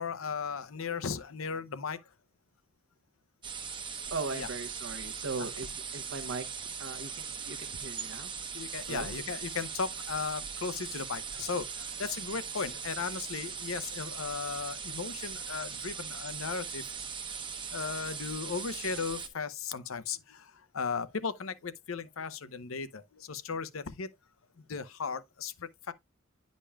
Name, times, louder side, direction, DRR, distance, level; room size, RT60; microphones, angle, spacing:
voice 1, 0.0-2.0 4.3-4.5 5.4-5.5 8.5-16.8 17.7-24.1 24.6-25.9, left 5 dB, 75° left, 0.7 m, -36 dB
sound 1, 3.4-19.3, right 6 dB, 25° right, 0.7 m, -40 dB
voice 2, 4.1-6.5 6.8-8.3 8.9-9.2, right 4 dB, 70° right, 0.8 m, -38 dB
9.9 x 5.2 x 2.2 m
head